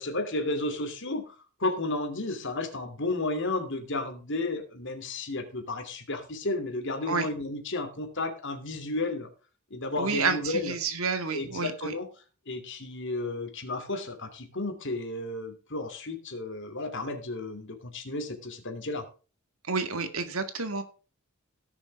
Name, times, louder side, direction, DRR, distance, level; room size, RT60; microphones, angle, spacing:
voice 1, 0.0-1.3 1.6-9.3 9.7-10.7 11.3-12.1 12.5-19.0, left 2 dB, 55° left, 6 dB, 2.8 m, -32 dB
voice 2, 10.0-11.9 19.7-20.8, right 4 dB, 70° right, 8 dB, 2.1 m, -29 dB
17.5 x 7.0 x 3.5 m, 0.35 s
head